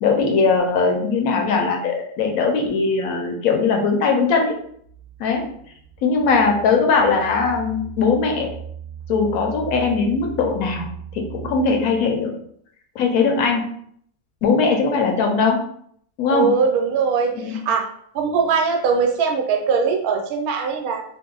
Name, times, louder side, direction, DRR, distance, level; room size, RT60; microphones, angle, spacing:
voice 1, 0.0-4.5 5.2-5.5 6.0-8.5 9.1-10.9 11.1-12.3 12.9-13.7 14.4-15.6 16.2-16.5 17.5-17.6, left 4 dB, 75° left, 2 dB, 1.0 m, -20 dB
sound 1, 4.5-12.3, right 8 dB, 25° right, 0.5 m, -38 dB
voice 2, 16.3-17.9 18.1-21.0, right 5 dB, 80° right, 2 dB, 1.0 m, -21 dB
2.8 x 2.0 x 3.7 m, 0.66 s
omnidirectional pair, 1.6 m